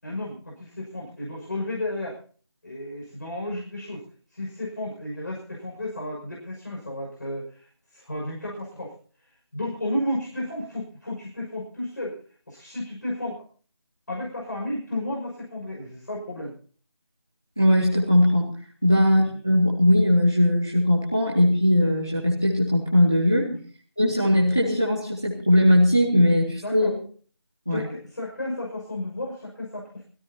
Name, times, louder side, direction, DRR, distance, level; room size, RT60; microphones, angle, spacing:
voice 1, 0.0-2.2 2.6-4.0 4.3-8.9 9.2-12.2 12.5-13.4 14.1-16.5 18.9-19.0 23.5-23.6 26.6-26.9 27.7-30.0, left 1 dB, 40° left, -3 dB, 6.0 m, -33 dB
voice 2, 17.6-18.5 18.8-23.5 24.0-26.9 27.7-27.8, left 1 dB, 10° left, -5 dB, 0.8 m, -20 dB
23.5 x 16.0 x 2.9 m, 0.42 s
figure-of-eight pair, 180°, 14 cm